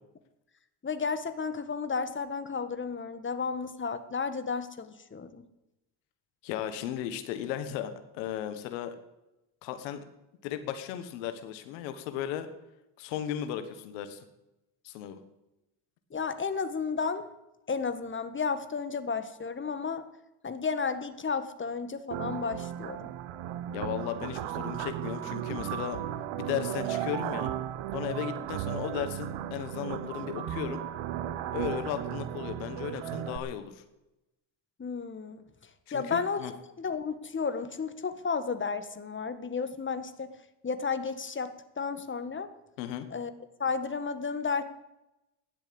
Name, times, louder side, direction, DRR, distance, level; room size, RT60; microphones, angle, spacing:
voice 1, 0.8-5.4 16.1-17.2 17.7-20.0 20.4-23.1 34.8-36.5 36.8-40.3 40.6-42.5 43.1-43.3 43.6-44.6, left 5 dB, 25° left, 10 dB, 1.6 m, -33 dB
voice 2, 6.4-8.9 9.6-10.0 10.4-12.5 13.0-14.2 14.8-15.2 23.7-26.0 26.4-27.5 27.9-30.8 31.5-33.8 35.9-36.5 42.8-43.1, left 10 dB, 90° left, 10 dB, 1.5 m, -35 dB
sound 1, 22.1-33.4, right 11 dB, 70° right, 1.2 m, -35 dB
14.0 x 11.0 x 8.6 m, 0.94 s
supercardioid pair, 75°, 50 cm